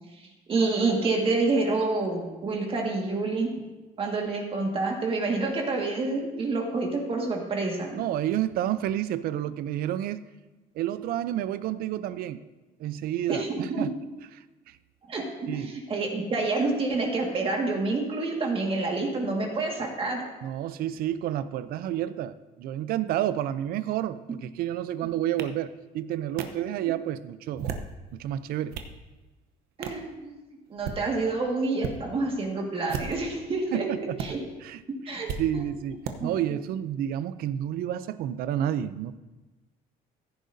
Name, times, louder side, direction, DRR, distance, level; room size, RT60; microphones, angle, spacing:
voice 1, 0.5-3.5 4.0-8.0 13.3-13.9 15.1-20.2 26.8-26.9 29.8-30.3 30.7-33.9 34.2-34.4 34.9-35.7 36.2-36.5, right 3 dB, 35° right, 1 dB, 1.9 m, -28 dB
voice 2, 7.9-10.2 10.8-12.4 12.8-13.9 14.7-14.8 15.5-15.8 20.4-27.7 28.1-28.8 33.7-34.2 34.6-34.8 35.1-39.2, right 11 dB, 70° right, 15 dB, 0.5 m, -30 dB
sound 1, 25.4-25.5 26.4-26.5 27.4-27.9 28.5-28.9 29.8-30.0 30.7-31.0 31.8-32.0 32.8-33.3 34.2-34.3 35.3-35.4 36.0-36.2, right 7 dB, 90° right, 0.9 m, -34 dB
15.5 x 10.5 x 2.7 m, 1.1 s
cardioid pair, 130°, 16 cm